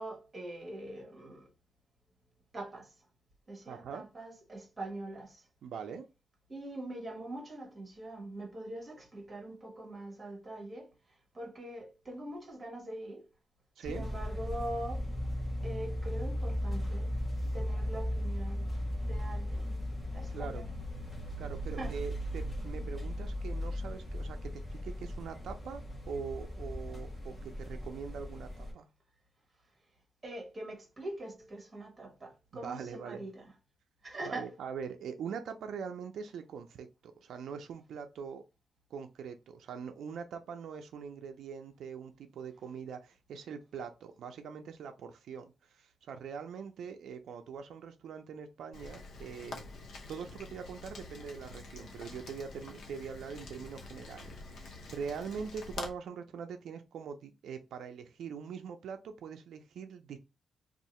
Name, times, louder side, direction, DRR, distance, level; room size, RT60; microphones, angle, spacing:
voice 1, 0.0-1.5 2.5-2.9 3.5-5.4 6.5-10.9 11.3-13.3 13.9-15.0 15.6-17.1 17.5-18.7 19.1-19.8 20.1-20.7 21.8-21.9 30.2-33.5 34.0-34.5, right 1 dB, 20° right, 1.2 m, -43 dB
voice 2, 3.7-4.0 5.6-6.0 13.8-14.1 20.3-20.6 21.4-28.9 32.5-33.3 34.3-38.4 38.9-49.7 50.1-60.2, right 6 dB, 85° right, 0.4 m, -43 dB
sound 1, 13.8-28.7, equal, 20° left, 1.0 m, -37 dB
Rain, 48.7-55.9, left 3 dB, 80° left, 0.7 m, -46 dB
2.7 x 2.4 x 4.1 m
wide cardioid pair, 145°, 0 cm